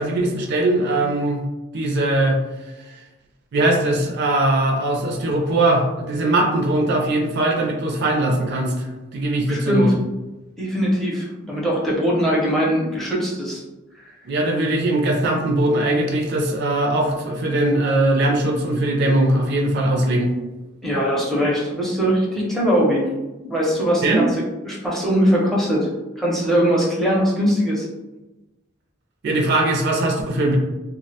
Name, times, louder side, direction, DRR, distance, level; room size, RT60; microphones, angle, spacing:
voice 1, 0.0-1.4 1.7-2.4 3.5-9.9 14.3-20.3 24.0-24.2 29.2-30.6, right 1 dB, 55° right, 1 dB, 0.4 m, -20 dB
voice 2, 9.5-9.9 10.6-13.6 20.8-23.1 23.4-25.9 26.2-27.9, equal, ahead, -5 dB, 0.5 m, -21 dB
2.3 x 2.1 x 2.7 m, 1.1 s
head